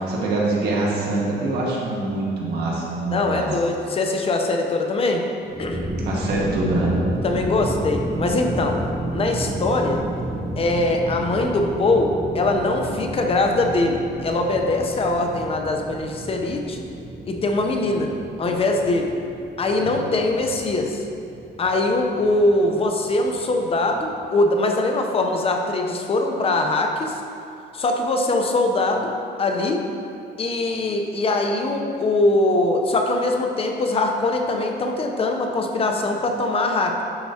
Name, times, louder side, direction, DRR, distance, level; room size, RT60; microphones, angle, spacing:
voice 1, 0.0-3.5 6.0-7.0 19.8-19.9, right 2 dB, 70° right, -4 dB, 1.6 m, -24 dB
voice 2, 3.1-5.2 5.6-5.8 7.2-8.8 9.1-10.0 10.6-16.8 17.3-18.1 18.4-19.1 19.6-21.0 21.6-27.2 27.7-29.1 29.4-29.9 30.4-37.0, left 2 dB, 35° left, 3 dB, 0.7 m, -22 dB
sound 1, 5.4-24.2, right 1 dB, ahead, 0.7 m, -32 dB
10.5 x 4.5 x 2.8 m, 2.6 s
cardioid pair, 125°, 18 cm